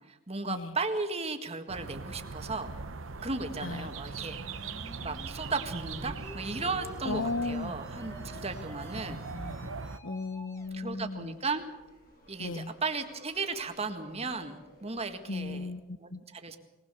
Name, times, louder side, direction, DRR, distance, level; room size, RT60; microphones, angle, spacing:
voice 1, 0.1-2.7 3.2-4.4 5.0-9.2 10.7-11.6 12.3-15.7 16.0-16.6, right 3 dB, 30° right, 6 dB, 1.8 m, -35 dB
sound 1, 1.7-10.0, right 4 dB, 85° right, 0.9 m, -41 dB
sound 2, 3.0-10.8, left 1 dB, 15° left, 1.7 m, -51 dB
voice 2, 7.0-7.7 8.9-9.6 10.0-11.3 12.4-12.7 15.3-16.2, left 3 dB, 85° left, 14 dB, 1.0 m, -36 dB
sound 3, 10.6-15.7, left 1 dB, 45° left, 7.6 m, -58 dB
21.5 x 19.5 x 6.9 m, 1.1 s
head